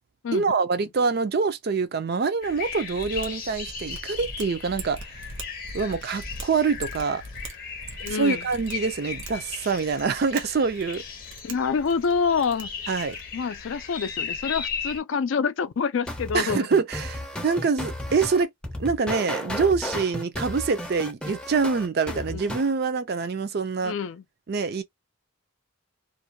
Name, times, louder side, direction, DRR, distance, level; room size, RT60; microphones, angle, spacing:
voice 1, 0.3-5.0 5.7-7.2 8.1-11.0 12.9-13.2 16.3-18.5 18.8-23.9 24.5-24.8, right 5 dB, 50° right, 0.4 m, -25 dB
sound 1, 2.4-15.0, left 6 dB, 45° left, 0.7 m, -37 dB
Mechanisms, 2.9-13.4, right 2 dB, 70° right, 0.9 m, -42 dB
voice 2, 8.0-8.5 11.4-12.7 13.3-16.7 22.1-22.4 23.8-24.2, left 5 dB, 65° left, 0.4 m, -27 dB
sound 2, 16.1-22.7, left 1 dB, 5° left, 0.5 m, -33 dB
2.5 x 2.2 x 2.8 m
head